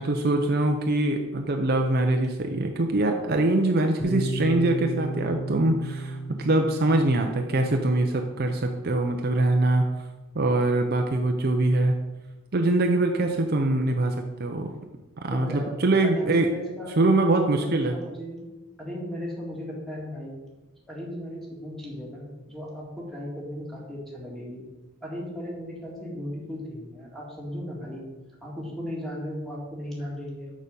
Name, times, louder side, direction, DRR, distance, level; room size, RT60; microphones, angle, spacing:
voice 1, 0.0-9.9 10.3-12.0 12.5-14.1 14.4-14.7 15.2-16.5 17.0-17.9, right 2 dB, 45° right, 4 dB, 0.6 m, -23 dB
Piano, 4.0-11.4, right 2 dB, 40° left, 2.2 m, -36 dB
voice 2, 15.3-15.7 16.0-18.4 18.8-20.3 20.9-24.6 25.0-28.1 28.4-30.5, equal, ahead, -4 dB, 1.9 m, -36 dB
6.6 x 6.1 x 5.3 m, 1.1 s
head